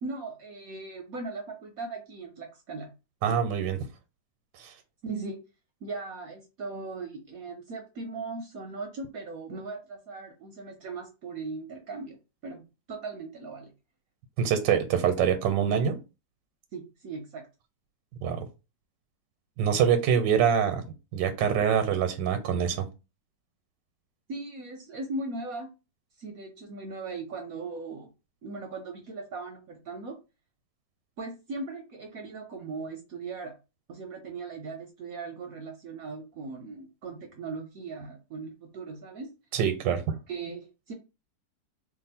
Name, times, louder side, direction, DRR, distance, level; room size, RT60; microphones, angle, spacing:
voice 1, 0.0-2.9 5.0-5.4 5.8-12.2 12.4-13.7 16.7-17.4 24.3-25.7 26.2-28.1 28.4-30.2 31.2-33.5 33.9-39.3 40.3-40.9, right 3 dB, 65° right, 3 dB, 0.9 m, -38 dB
voice 2, 3.2-3.8 4.6-4.7 14.4-16.0 18.2-18.5 19.6-20.8 21.1-22.9 39.5-40.0, right 8 dB, 85° right, 8 dB, 1.3 m, -25 dB
2.9 x 2.4 x 4.1 m, 0.29 s
omnidirectional pair, 1.9 m